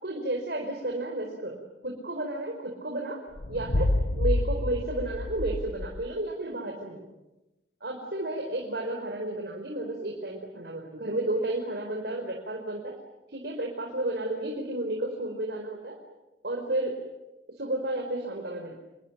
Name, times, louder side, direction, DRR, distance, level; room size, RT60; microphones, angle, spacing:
voice 1, 0.0-3.2 3.5-7.0 7.8-12.9 13.3-16.0 16.4-16.9 17.6-18.7, right 1 dB, 65° right, 1 dB, 4.8 m, -32 dB
sound 1, 3.3-6.1, left 1 dB, 65° left, 1.0 m, -28 dB
29.0 x 22.5 x 9.0 m, 1.0 s
head